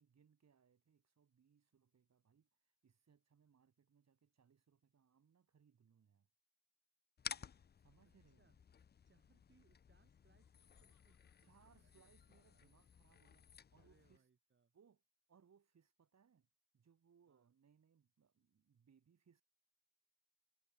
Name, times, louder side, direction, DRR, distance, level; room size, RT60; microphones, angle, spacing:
voice 1, 0.0-6.3 7.8-8.6 11.4-14.3 14.7-15.0 15.3-16.5 16.7-19.4, right 7 dB, 55° right, 5.3 m, -72 dB
sound 1, 7.2-14.2, left 7 dB, 30° left, 0.4 m, -55 dB
voice 2, 8.0-8.6 9.0-11.2 11.8-12.7 13.8-14.7 17.3-17.5, right 5 dB, 35° right, 2.2 m, -77 dB
Laughter, 10.1-13.2, left 7 dB, 55° left, 3.7 m, -89 dB
wide cardioid pair, 170°, 33 cm